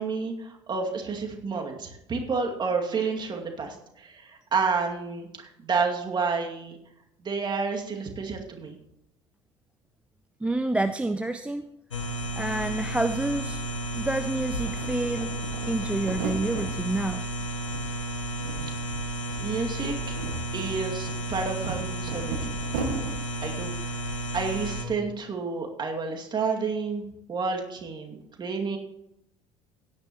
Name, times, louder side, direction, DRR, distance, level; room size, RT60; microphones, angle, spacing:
voice 1, 0.0-6.8 7.2-8.8 19.4-19.9 20.5-22.6 23.4-24.0 24.3-28.8, right 4 dB, 30° right, 2 dB, 2.4 m, -30 dB
voice 2, 10.4-11.6 12.4-13.6 13.9-15.3 15.7-17.2, right 2 dB, 5° right, 11 dB, 0.5 m, -28 dB
sound 1, 11.9-24.9, right 1 dB, 80° left, 1.4 m, -32 dB
sound 2, 12.7-12.8 13.0-14.2 14.5-16.7 17.1-17.9 18.1-19.0 19.2-19.4 19.9-23.2, right 4 dB, 60° right, 2.0 m, -36 dB
16.5 x 11.0 x 3.1 m, 0.81 s
figure-of-eight pair, 65°, 16 cm